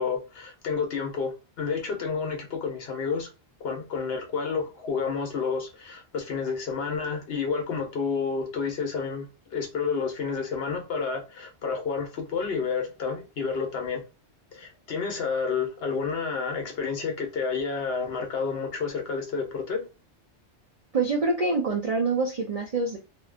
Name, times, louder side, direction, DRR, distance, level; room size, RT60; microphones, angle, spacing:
voice 1, 0.0-3.3 3.6-9.3 9.5-14.0 14.5-19.9, left 5 dB, 65° left, 0.9 m, -30 dB
voice 2, 20.9-23.0, right 3 dB, 60° right, 0.4 m, -25 dB
2.6 x 2.2 x 2.4 m
omnidirectional pair, 1.2 m